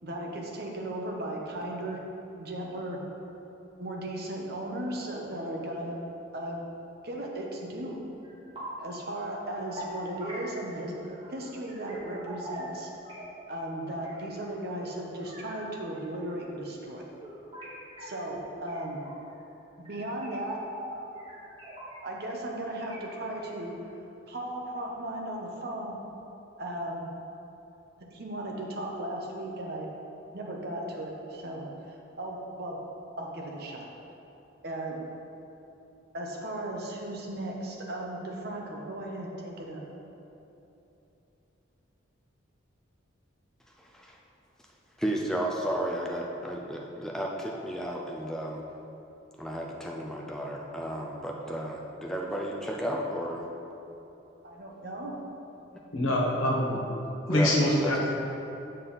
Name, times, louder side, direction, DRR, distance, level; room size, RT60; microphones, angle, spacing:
voice 1, 0.0-2.0 2.4-3.0 3.8-6.0 6.3-6.6 7.0-8.0 8.8-10.9 11.3-12.9 13.5-17.0 18.0-19.0 19.8-20.6 22.0-23.7 24.3-26.0 26.6-27.1 28.1-29.9 30.3-31.7 32.2-32.8 33.2-33.9 34.6-35.0 36.1-39.8 54.4-55.2, right 1 dB, 50° right, -1 dB, 0.9 m, -36 dB
sound 1, 8.2-8.9 9.2-13.5 13.9-15.7 15.9-16.7 17.2-19.3 19.9-22.3 22.6-23.5, right 1 dB, 25° right, 1.4 m, -44 dB
voice 2, 45.0-48.6 49.4-53.4 57.3-57.9, right 1 dB, ahead, -1 dB, 0.4 m, -33 dB
voice 3, 55.9-56.8 57.3-58.2, left 1 dB, 85° left, -3 dB, 1.4 m, -25 dB
7.5 x 5.4 x 4.0 m, 3.0 s
head